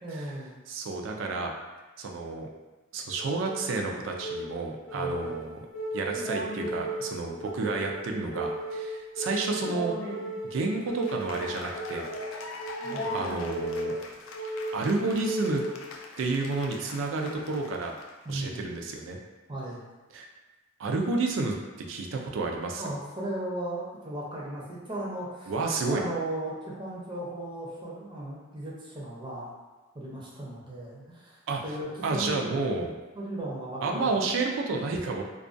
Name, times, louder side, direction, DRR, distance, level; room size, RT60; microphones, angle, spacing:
voice 1, 0.0-0.6 4.9-5.3 12.8-13.2 18.2-18.7 19.5-19.8 22.8-25.5 25.9-29.5 29.9-32.6 33.1-34.1, right 1 dB, 25° right, -5 dB, 0.5 m, -36 dB
voice 2, 0.7-1.5 2.0-2.5 2.9-5.7 5.9-10.0 10.5-12.1 12.3-12.7 13.1-14.0 14.7-15.6 16.2-18.0 18.3-19.2 20.1-20.3 20.8-21.6 21.9-22.8 25.5-26.0 31.5-31.6 32.0-32.9 33.8-35.2, right 3 dB, 80° right, 1 dB, 0.4 m, -30 dB
sound 1, 3.2-16.1, right 1 dB, 60° left, 0.7 m, -36 dB
Cheering / Applause, 10.8-18.3, left 3 dB, 85° left, 0.3 m, -43 dB
2.4 x 2.2 x 2.5 m, 1.2 s
head